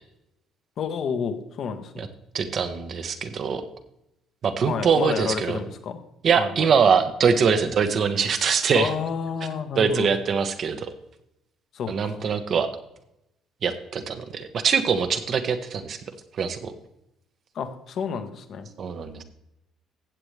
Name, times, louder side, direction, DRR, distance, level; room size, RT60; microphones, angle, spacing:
voice 1, 0.8-1.9 4.7-6.0 6.4-6.7 8.7-10.1 11.7-12.3 17.5-18.7, left 6 dB, 60° left, 7 dB, 1.4 m, -30 dB
voice 2, 2.3-3.6 4.4-5.6 6.2-8.9 9.8-10.9 11.9-12.7 13.6-16.0 16.4-16.7 18.8-19.2, right 6 dB, 55° right, 8 dB, 1.3 m, -23 dB
15.0 x 7.9 x 3.4 m, 0.83 s
supercardioid pair, 70°, 0 cm